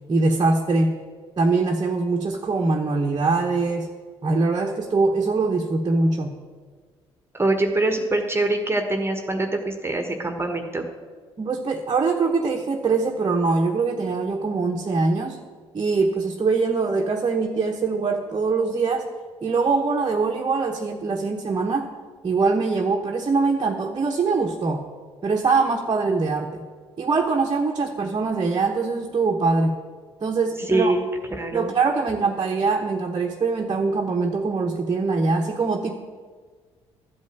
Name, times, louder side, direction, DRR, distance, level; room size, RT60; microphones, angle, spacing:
voice 1, 0.1-1.0 1.4-3.9 4.2-6.4 11.4-15.4 15.7-19.1 19.4-21.9 22.2-24.9 25.2-26.6 27.0-29.8 30.2-30.9 31.5-35.9, right 4 dB, 30° right, 1 dB, 1.1 m, -23 dB
voice 2, 7.3-10.9 30.7-31.0 31.4-31.7, right 2 dB, 15° right, 5 dB, 1.4 m, -24 dB
13.0 x 5.4 x 7.8 m, 1.5 s
figure-of-eight pair, 50°, 14 cm